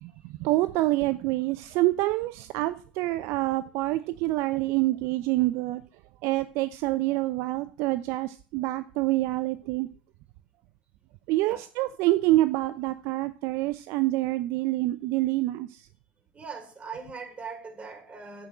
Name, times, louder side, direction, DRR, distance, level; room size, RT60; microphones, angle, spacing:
voice 1, 0.0-5.8 6.2-9.9 11.3-15.8, right 18 dB, 60° right, 13 dB, 0.7 m, -26 dB
voice 2, 16.3-18.5, right 5 dB, 25° right, 4 dB, 4.8 m, -40 dB
9.7 x 8.6 x 7.7 m, 0.40 s
hypercardioid pair, 75°, 5 cm